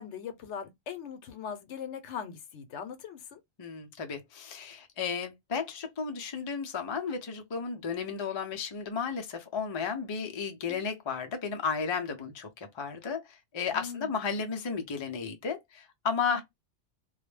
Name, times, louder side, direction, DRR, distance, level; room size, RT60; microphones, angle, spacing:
voice 1, 0.0-3.4 10.7-10.9 13.7-14.2 16.3-16.4, left 7 dB, 75° left, 0.9 m, -40 dB
voice 2, 3.6-13.2 13.5-16.4, left 6 dB, 40° left, 0.4 m, -33 dB
2.3 x 2.1 x 3.1 m
omnidirectional pair, 1.2 m